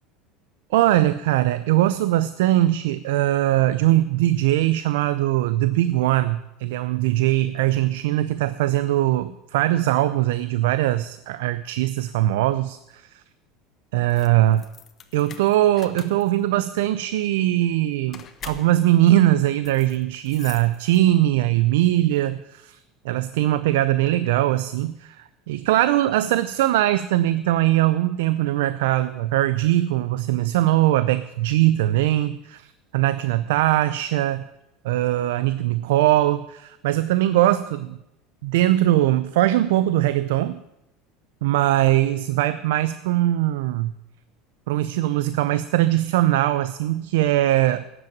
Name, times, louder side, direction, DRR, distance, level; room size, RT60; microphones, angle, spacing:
voice 1, 0.7-13.2 13.9-14.6 15.1-22.8 23.0-34.4 34.8-38.0 38.4-40.6 41.4-43.9 44.7-47.8, right 14 dB, 85° right, 14 dB, 0.5 m, -21 dB
sound 1, 14.1-21.3, left 8 dB, 35° left, 1.1 m, -45 dB
12.0 x 7.9 x 8.7 m, 0.85 s
supercardioid pair, 120°, 0 cm